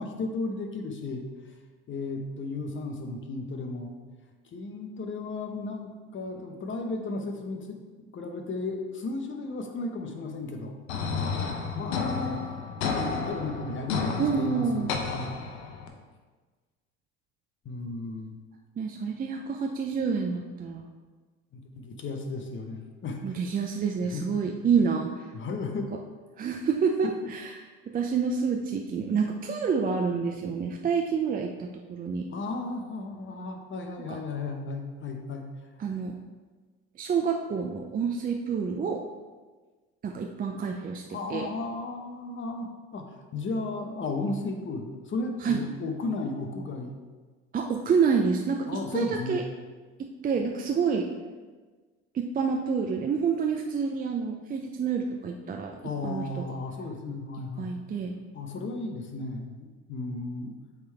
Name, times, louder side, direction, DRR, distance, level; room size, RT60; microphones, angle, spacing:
voice 1, 0.0-1.5 1.9-4.0 4.5-10.8 11.7-12.4 13.2-15.4 17.6-18.4 21.5-23.4 24.0-24.2 24.8-24.9 25.3-25.9 27.0-27.1 32.3-35.5 41.1-47.0 48.7-49.4 55.8-57.8 58.3-60.6, left 3 dB, 35° left, 4 dB, 1.0 m, -34 dB
sound 1, 10.9-15.9, left 5 dB, 75° left, 0.8 m, -31 dB
voice 2, 14.2-14.9 18.8-20.8 23.2-25.1 26.4-27.5 27.9-32.2 34.1-34.2 35.8-36.2 37.0-39.0 40.0-41.0 41.3-41.5 45.4-45.6 47.5-48.7 48.9-49.4 50.0-51.1 52.1-56.6 57.6-58.1, right 6 dB, 25° right, 2 dB, 0.5 m, -28 dB
7.9 x 3.6 x 3.4 m, 1.4 s
hypercardioid pair, 75°, 33 cm